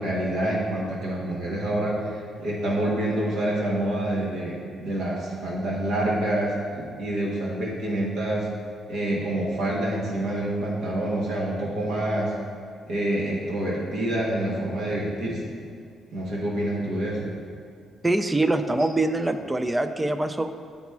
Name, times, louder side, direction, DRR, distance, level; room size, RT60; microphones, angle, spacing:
voice 1, 0.0-8.5 8.9-12.3 12.9-15.6 16.1-17.3, right 1 dB, 75° right, -4 dB, 1.2 m, -27 dB
voice 2, 18.0-20.5, right 2 dB, 15° right, 9 dB, 0.4 m, -24 dB
7.2 x 4.1 x 4.6 m, 2.1 s
cardioid pair, 90°, 0 cm